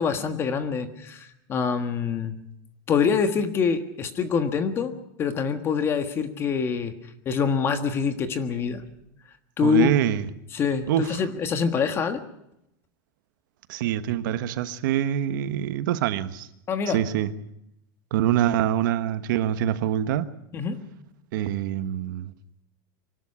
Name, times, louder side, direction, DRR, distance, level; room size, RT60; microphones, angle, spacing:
voice 1, 0.0-2.4 2.9-4.9 5.2-6.9 7.2-8.8 9.6-9.9 10.5-12.2 16.7-17.0 20.5-20.8, left 6 dB, 20° left, 1.5 m, -25 dB
voice 2, 9.6-10.2 10.9-11.2 13.7-16.5 16.9-17.3 18.1-20.3 21.3-22.3, right 11 dB, 70° right, 1.3 m, -25 dB
24.5 x 12.5 x 9.8 m
supercardioid pair, 170°, 11 cm